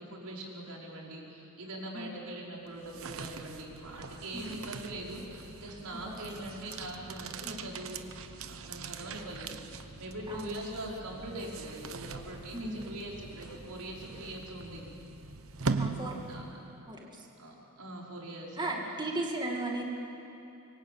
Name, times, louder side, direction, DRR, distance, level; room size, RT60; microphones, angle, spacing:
voice 1, 0.0-8.0 8.4-14.8 15.8-16.4 17.4-18.8, right 1 dB, 85° right, -2 dB, 5.4 m, -42 dB
sound 1, 2.7-16.7, right 4 dB, 65° right, 1.1 m, -41 dB
voice 2, 5.9-6.3 7.4-7.6 10.3-10.6 12.5-12.9 15.8-16.1 16.9-17.3 18.6-19.8, right 2 dB, 20° right, 0 dB, 2.3 m, -36 dB
25.5 x 23.0 x 8.8 m, 3.0 s
head